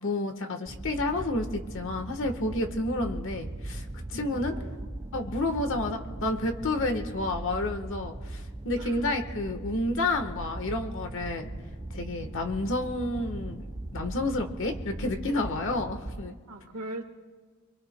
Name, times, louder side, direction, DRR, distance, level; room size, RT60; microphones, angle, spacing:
voice 1, 0.0-4.6 5.1-11.5 11.9-13.6 13.9-16.3, left 2 dB, 60° left, 6 dB, 1.3 m, -30 dB
sound 1, 0.7-16.3, right 1 dB, 15° right, 0.4 m, -39 dB
voice 2, 4.1-4.9 8.8-9.1 16.5-17.0, right 2 dB, 75° right, 5 dB, 1.5 m, -40 dB
25.5 x 24.0 x 2.2 m, 1.5 s
head